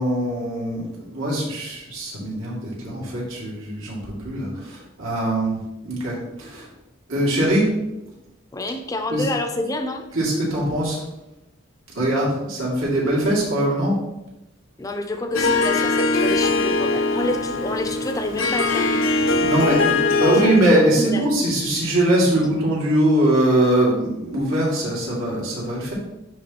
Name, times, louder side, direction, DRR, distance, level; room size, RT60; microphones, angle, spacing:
voice 1, 0.0-6.7 7.1-7.7 9.1-9.2 10.1-11.0 11.9-13.9 19.4-25.9, right 1 dB, 85° right, -5 dB, 2.3 m, -22 dB
voice 2, 8.5-10.0 14.8-19.3 19.8-21.3 22.4-22.5, left 1 dB, 15° left, 5 dB, 0.4 m, -28 dB
Harp, 15.3-20.8, left 3 dB, 80° left, 0.6 m, -21 dB
10.5 x 3.5 x 2.9 m, 0.95 s
head